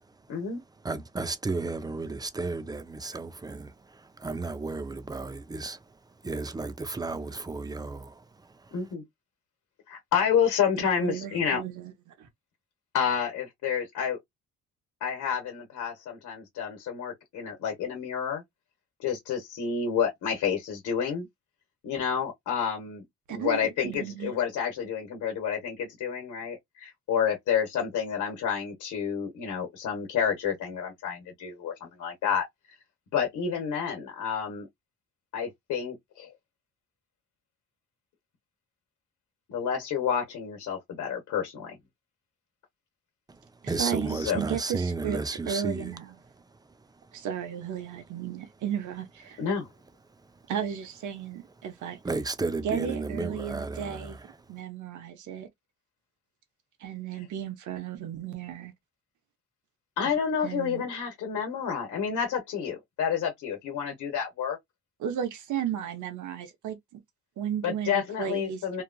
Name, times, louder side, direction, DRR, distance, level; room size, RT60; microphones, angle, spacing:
voice 1, 0.3-0.6 8.7-9.0 9.9-11.6 12.9-14.2 15.0-18.4 19.0-21.3 21.8-23.0 23.3-32.5 33.1-34.7 35.3-36.3 39.5-41.7 44.1-44.4 49.4-49.7 60.0-64.6 67.6-68.8, left 7 dB, 80° left, 1.1 m, -29 dB
voice 2, 0.8-5.8 6.2-8.7 43.3-43.4 43.7-45.9 52.0-54.2, right 3 dB, 15° right, 0.5 m, -33 dB
voice 3, 10.8-11.9 12.2-12.3 23.3-24.3 43.6-45.2 45.5-46.1 47.1-49.4 50.5-52.0 52.6-54.2 54.5-55.5 56.8-58.7 60.0-60.9 65.0-67.0 67.4-68.8, right 9 dB, 75° right, 1.0 m, -34 dB
2.9 x 2.4 x 2.2 m
cardioid pair, 90°, 30 cm